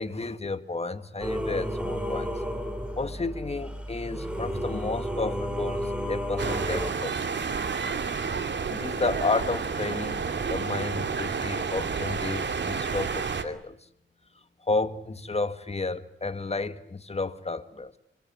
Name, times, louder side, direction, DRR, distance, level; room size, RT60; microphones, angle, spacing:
voice 1, 0.0-2.4 3.0-7.4 8.7-13.8 14.6-17.9, left 3 dB, 30° left, 1.8 m, -32 dB
Singing / Musical instrument, 1.2-6.9, equal, 5° right, 5.2 m, -32 dB
sound 1, 6.4-13.4, right 5 dB, 60° right, 2.6 m, -30 dB
25.0 x 24.5 x 9.4 m
cardioid pair, 75°, 21 cm